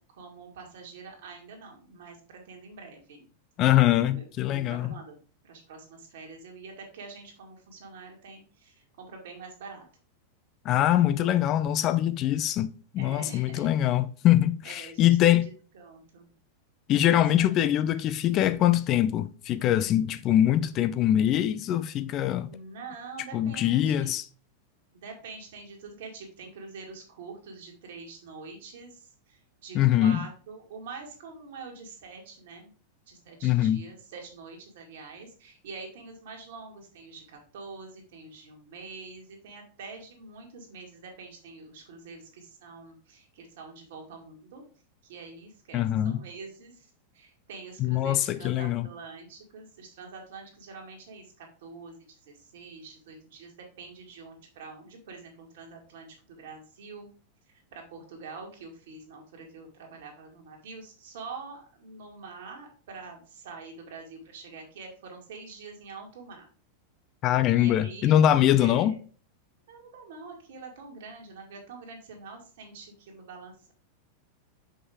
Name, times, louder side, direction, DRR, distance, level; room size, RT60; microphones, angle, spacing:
voice 1, 0.0-3.3 3.7-5.2 5.4-9.9 11.0-11.4 13.0-13.8 14.6-16.3 17.1-17.6 22.5-24.2 24.9-32.7 33.1-44.6 45.0-57.1 57.5-66.5 67.5-68.2 68.6-69.0 69.7-73.7, right 4 dB, 55° right, 2.2 m, -45 dB
voice 2, 3.6-4.9 10.6-15.5 16.9-22.6 23.3-24.2 29.7-30.2 33.4-33.8 45.7-46.2 47.8-48.9 67.2-68.9, left 12 dB, 35° left, 0.4 m, -23 dB
6.2 x 5.5 x 3.6 m
figure-of-eight pair, 90°, 0 cm